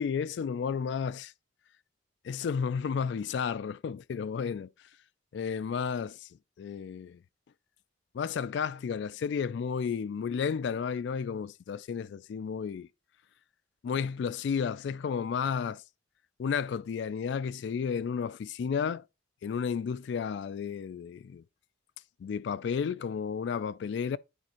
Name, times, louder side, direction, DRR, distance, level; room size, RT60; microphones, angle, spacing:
voice 1, 0.0-1.3 2.2-4.7 5.3-6.3 6.6-7.2 8.1-12.9 13.8-15.8 16.4-19.1 19.4-21.4 22.2-24.2, left 6 dB, 65° left, 0.3 m, -32 dB
9.8 x 4.4 x 2.9 m
head